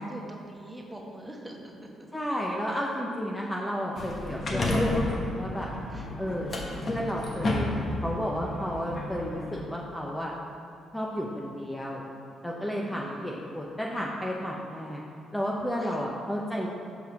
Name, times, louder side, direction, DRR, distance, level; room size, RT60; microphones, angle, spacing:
voice 1, 0.0-1.7 5.9-6.1 12.8-13.4 15.8-16.0, right 1 dB, 10° right, 0 dB, 1.1 m, -43 dB
voice 2, 2.1-5.7 6.2-6.5 6.9-10.3 10.9-12.0 12.4-15.0 15.3-16.7, equal, 5° left, -3 dB, 0.8 m, -32 dB
sound 1, 4.0-9.6, left 2 dB, 40° left, 1.2 m, -31 dB
5.7 x 5.5 x 5.9 m, 2.7 s
cardioid pair, 95°, 0 cm